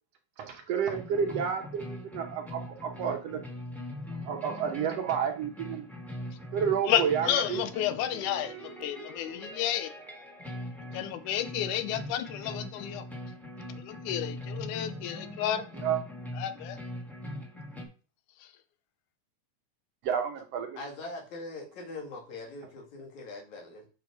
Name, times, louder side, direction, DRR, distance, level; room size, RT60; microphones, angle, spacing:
voice 1, 0.4-3.4 4.3-5.9 6.5-7.6 15.8-16.0 20.0-20.7, right 7 dB, 65° right, 1.8 m, -30 dB
sound 1, 0.9-17.9, left 1 dB, ahead, 1.1 m, -41 dB
voice 2, 6.9-9.9 10.9-13.1 13.8-15.6 16.4-16.8, left 11 dB, 90° left, 2.3 m, -31 dB
voice 3, 20.8-23.9, left 2 dB, 70° left, 3.5 m, -42 dB
7.1 x 5.6 x 4.7 m
omnidirectional pair, 3.4 m